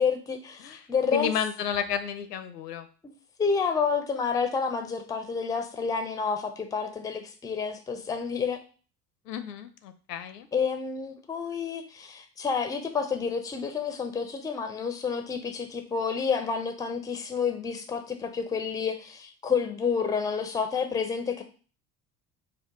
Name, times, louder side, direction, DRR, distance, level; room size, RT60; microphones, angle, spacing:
voice 1, 0.0-1.3 3.4-8.6 10.5-21.4, left 5 dB, 10° left, 7 dB, 0.4 m, -29 dB
voice 2, 0.6-2.9 9.3-10.5, left 8 dB, 80° left, 10 dB, 0.6 m, -32 dB
4.6 x 2.2 x 3.7 m, 0.39 s
figure-of-eight pair, 60°, 48 cm